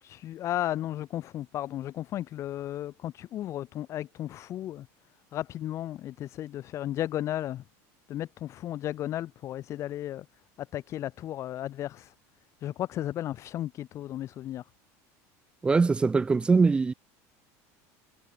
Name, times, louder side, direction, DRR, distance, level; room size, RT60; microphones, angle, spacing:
voice 1, 0.0-4.9 5.3-7.6 8.1-10.3 10.6-12.1 12.6-14.6, left 12 dB, 35° left, 1.4 m, -34 dB
voice 2, 15.6-16.9, right 4 dB, 10° right, 0.8 m, -22 dB
cardioid pair, 150°, 8 cm